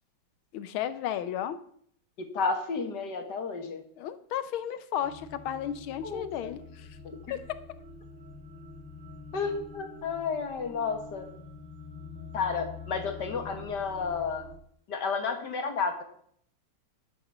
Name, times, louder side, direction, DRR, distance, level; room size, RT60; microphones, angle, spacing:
voice 1, 0.5-1.6 4.0-7.0 7.3-7.4, left 10 dB, 85° left, 12 dB, 1.6 m, -33 dB
voice 2, 2.3-3.8 6.0-6.5 7.0-7.2 9.3-11.3 12.3-14.5 14.9-16.0, left 5 dB, 55° left, 5 dB, 2.1 m, -31 dB
sound 1, 5.0-14.5, left 4 dB, 65° right, 3.9 m, -46 dB
11.0 x 7.1 x 7.1 m, 0.65 s
omnidirectional pair, 2.2 m